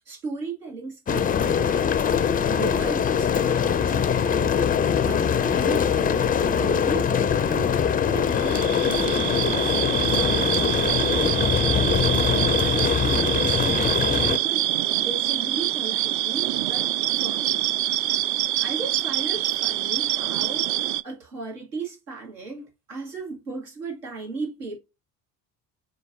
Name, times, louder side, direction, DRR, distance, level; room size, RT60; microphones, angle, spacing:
voice 1, 0.1-1.8 2.5-4.5 5.0-7.7 8.1-12.1 12.4-16.9 17.2-17.7 18.6-24.8, right 3 dB, 90° right, 2.0 m, -36 dB
sound 1, 1.1-14.4, left 7 dB, 20° left, 0.4 m, -23 dB
sound 2, 8.3-21.0, right 14 dB, 45° right, 0.4 m, -25 dB
5.0 x 4.0 x 2.7 m
hypercardioid pair, 55°, 46 cm